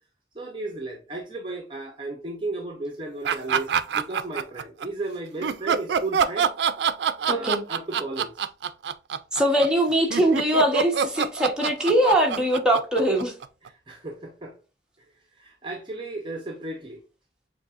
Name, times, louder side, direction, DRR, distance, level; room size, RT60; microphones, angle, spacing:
voice 1, 0.3-6.5 7.2-8.4 13.6-14.5 15.4-17.0, right 2 dB, 30° right, 0.7 m, -34 dB
sound 1, 3.2-4.9 5.4-13.7, right 7 dB, 75° right, 0.3 m, -25 dB
voice 2, 7.3-7.6 9.3-13.3, right 1 dB, 5° right, 0.9 m, -22 dB
7.0 x 2.7 x 2.4 m
head